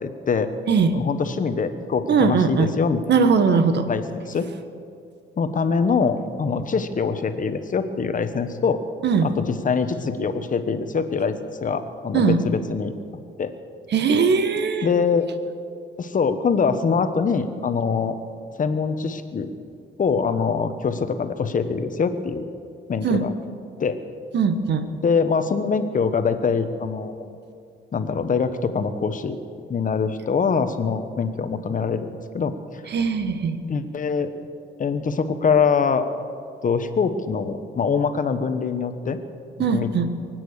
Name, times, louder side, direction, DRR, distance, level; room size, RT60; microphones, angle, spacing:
voice 1, 0.0-0.5 0.9-3.0 3.9-4.5 5.4-8.8 9.2-12.9 13.4-13.5 14.8-15.3 16.0-18.2 18.6-19.5 20.0-22.4 22.9-23.3 23.8-24.0 25.0-27.4 27.9-29.4 29.7-32.1 32.3-32.5 33.7-34.3 34.8-36.1 36.6-39.2 39.7-39.9, left 5 dB, 40° left, 9 dB, 1.3 m, -23 dB
voice 2, 2.1-2.7 3.1-3.9 9.0-9.3 12.1-12.4 13.9-14.9 23.0-23.3 24.3-24.8 32.9-33.6 39.6-40.1, right 5 dB, 60° right, 9 dB, 1.3 m, -20 dB
23.5 x 9.2 x 6.6 m, 2.3 s
cardioid pair, 90°, 20 cm